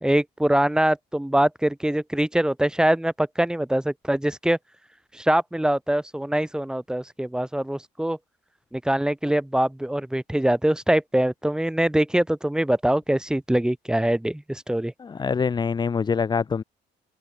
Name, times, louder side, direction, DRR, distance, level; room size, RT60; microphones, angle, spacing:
voice 1, 0.0-4.6 5.1-8.2 8.7-14.9, right 1 dB, 5° right, 2.8 m, -23 dB
voice 2, 15.0-16.6, left 5 dB, 25° left, 0.8 m, -24 dB
open air
cardioid pair, 110°, 17 cm